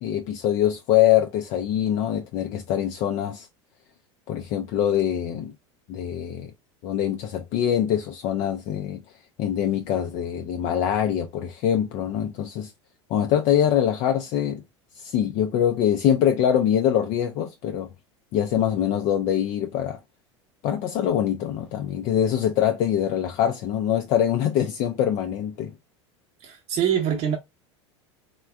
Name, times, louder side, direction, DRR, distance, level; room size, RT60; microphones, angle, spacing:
voice 1, 0.0-3.5 4.3-5.5 5.9-6.5 6.8-9.0 9.4-12.7 13.1-14.6 15.0-17.9 18.3-20.0 20.6-25.7, left 10 dB, 50° left, 0.5 m, -24 dB
voice 2, 26.4-27.4, right 9 dB, 45° right, 0.7 m, -24 dB
3.2 x 2.2 x 2.3 m
hypercardioid pair, 85°, 15 cm